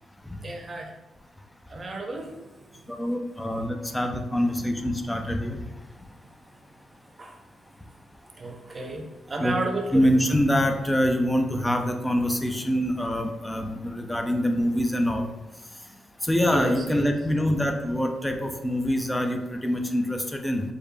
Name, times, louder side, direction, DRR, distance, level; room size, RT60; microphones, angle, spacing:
voice 1, 0.4-0.9 1.7-2.9 7.2-7.4 8.4-10.1 16.4-17.1, right 2 dB, 40° right, 3 dB, 0.8 m, -33 dB
voice 2, 2.9-5.6 9.4-9.5 9.9-15.3 16.3-20.6, equal, 10° left, 5 dB, 0.6 m, -25 dB
4.7 x 2.1 x 3.3 m, 1.1 s
hypercardioid pair, 40°, 0 cm